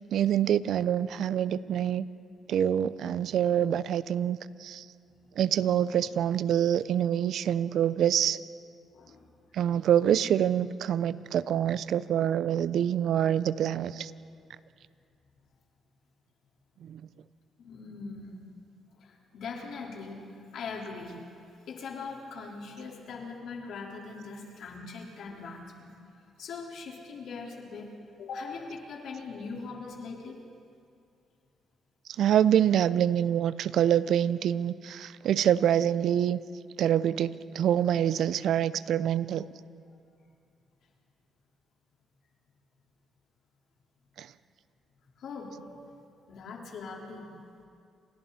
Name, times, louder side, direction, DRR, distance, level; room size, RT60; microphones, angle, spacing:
voice 1, 0.1-2.1 2.5-4.8 5.4-8.4 9.5-14.1 16.8-17.0 32.2-36.4 36.8-39.5 44.2-44.3, right 10 dB, 70° right, 16 dB, 0.7 m, -26 dB
voice 2, 8.9-9.3 17.6-18.5 19.0-21.2 21.7-25.9 26.4-27.9 28.2-30.4 45.2-45.6 46.3-47.3, left 4 dB, 70° left, -1 dB, 4.6 m, -41 dB
29.5 x 27.0 x 4.4 m, 2.4 s
cardioid pair, 90°, 0 cm